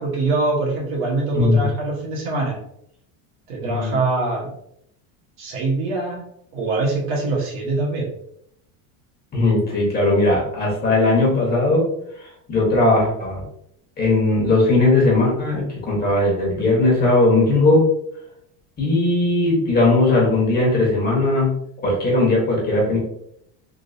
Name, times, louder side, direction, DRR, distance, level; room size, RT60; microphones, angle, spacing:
voice 1, 0.0-2.6 3.5-4.5 5.4-6.2 6.5-8.0, right 3 dB, 55° right, -2 dB, 1.3 m, -23 dB
voice 2, 1.3-1.6 3.6-3.9 9.3-11.8 12.2-13.4 14.0-17.8 18.8-21.5 21.8-23.0, left 2 dB, 20° left, -4 dB, 1.2 m, -18 dB
3.7 x 2.6 x 2.6 m, 0.73 s
cardioid pair, 145°, 43 cm